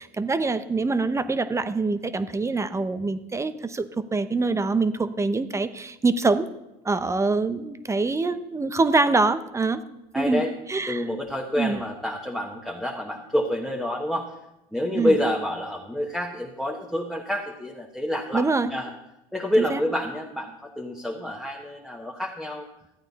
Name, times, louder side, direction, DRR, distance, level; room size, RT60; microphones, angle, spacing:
voice 1, 0.0-6.5 6.8-9.8 10.1-10.4 10.7-11.0 11.6-11.8 14.9-15.2 18.3-18.7 19.6-19.8, right 3 dB, 15° right, 12 dB, 0.8 m, -24 dB
voice 2, 10.1-10.5 10.9-14.3 14.7-18.9 19.3-22.7, left 1 dB, ahead, -2 dB, 1.4 m, -28 dB
13.5 x 8.9 x 4.1 m, 0.91 s
supercardioid pair, 95°, 18 cm